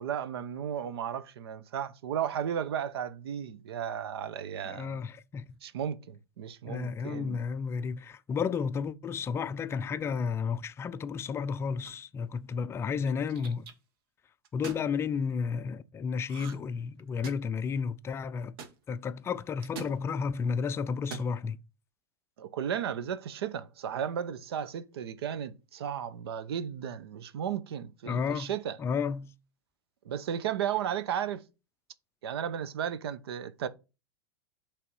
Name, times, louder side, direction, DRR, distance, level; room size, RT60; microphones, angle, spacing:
voice 1, 0.0-5.0 5.6-7.4 22.4-28.8 30.0-31.4 32.2-33.7, right 9 dB, 85° right, 0.7 m, -34 dB
voice 2, 4.6-5.5 6.7-13.6 14.5-18.6 18.9-21.6 28.1-28.5 28.8-29.3, left 6 dB, 20° left, 0.4 m, -32 dB
sound 1, 11.8-12.2 13.0-13.7 14.5-14.9 16.3-16.7 17.0-17.6 18.6-18.7 19.6-20.0 21.0-21.3, right 5 dB, 70° right, 1.3 m, -42 dB
5.6 x 3.4 x 5.4 m
supercardioid pair, 125°, 13 cm